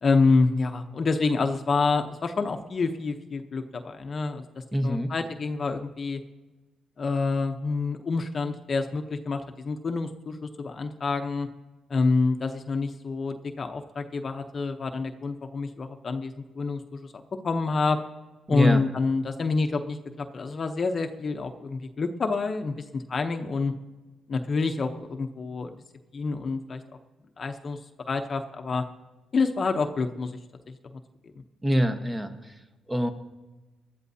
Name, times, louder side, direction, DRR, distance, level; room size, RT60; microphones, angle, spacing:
voice 1, 0.0-4.4 4.8-6.2 7.0-11.5 11.9-18.0 18.5-23.7 24.3-25.7 26.1-26.8 27.4-27.8 28.1-28.8 29.3-30.4 30.7-30.8, left 4 dB, 40° left, 6 dB, 0.8 m, -27 dB
voice 2, 4.7-5.1 18.5-18.8 31.6-32.6 32.9-33.1, equal, 15° right, 6 dB, 1.2 m, -25 dB
19.5 x 12.0 x 2.8 m, 1.2 s
cardioid pair, 90°, 0 cm